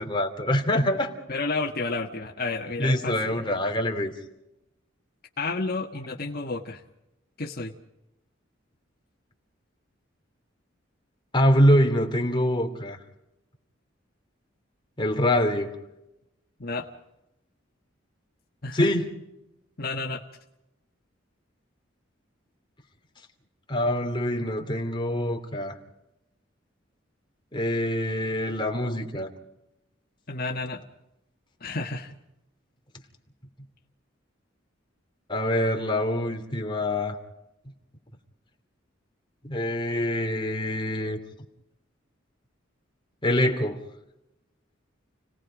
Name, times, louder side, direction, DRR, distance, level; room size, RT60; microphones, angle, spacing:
voice 1, 0.0-1.1 2.8-4.1 11.3-13.0 15.0-15.8 18.7-19.1 23.7-25.8 27.5-29.3 35.3-37.2 39.4-41.2 43.2-43.8, left 1 dB, 25° left, 2.9 m, -24 dB
voice 2, 1.3-3.3 5.4-6.8 7.4-7.7 16.6-16.9 18.6-18.9 19.8-20.2 30.3-30.8 31.6-32.1, left 3 dB, 50° left, 1.6 m, -31 dB
30.0 x 18.5 x 5.1 m
head